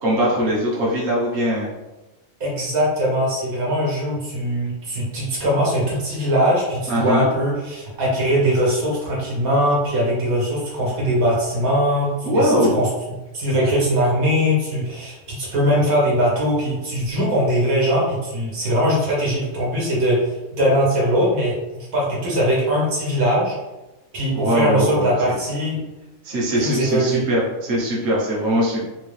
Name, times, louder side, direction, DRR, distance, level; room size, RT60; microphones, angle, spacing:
voice 1, 0.0-1.7 6.9-7.3 12.2-12.8 24.3-25.3 26.2-28.8, equal, 55° right, -5 dB, 1.1 m, -21 dB
voice 2, 2.4-12.9 13.3-23.5 24.1-25.8 26.6-27.2, equal, 85° right, -5 dB, 1.6 m, -21 dB
3.6 x 2.5 x 3.1 m, 1.1 s
omnidirectional pair, 1.4 m